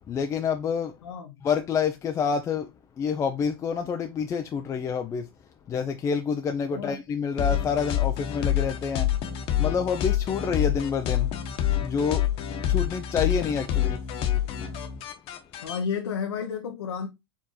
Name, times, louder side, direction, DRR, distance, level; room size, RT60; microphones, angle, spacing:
voice 1, 0.1-1.0 1.4-2.7 3.0-5.3 5.7-9.1 9.6-11.3 11.8-12.2 12.7-14.0, left 6 dB, 25° left, 0.4 m, -27 dB
voice 2, 1.0-1.4 6.7-7.0 15.6-17.1, left 6 dB, 90° left, 0.8 m, -31 dB
sound 1, 7.4-15.8, left 11 dB, 45° left, 1.0 m, -27 dB
4.6 x 3.4 x 3.0 m
hypercardioid pair, 120°, 13 cm